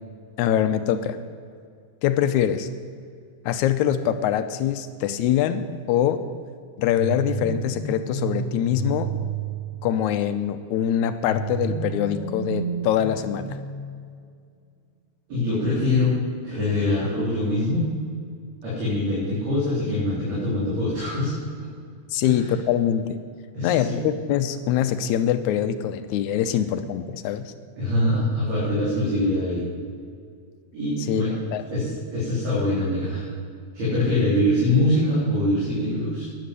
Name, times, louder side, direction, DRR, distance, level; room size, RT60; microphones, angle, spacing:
voice 1, 0.4-1.2 2.0-2.7 3.5-6.2 6.8-9.1 9.8-13.6 22.1-23.2 23.6-27.5 31.1-31.2 31.5-31.6, left 10 dB, 80° left, 10 dB, 2.0 m, -24 dB
sound 1, 7.0-10.1 11.2-14.2, right 4 dB, 65° left, 2.5 m, -31 dB
voice 2, 15.3-16.1 16.4-17.9 18.6-21.3 22.2-22.4 23.5-24.0 27.8-29.6 30.7-31.3 31.7-33.3 33.7-36.2, left 1 dB, 60° right, -9 dB, 5.3 m, -23 dB
11.5 x 10.5 x 8.1 m, 2.2 s
omnidirectional pair, 3.5 m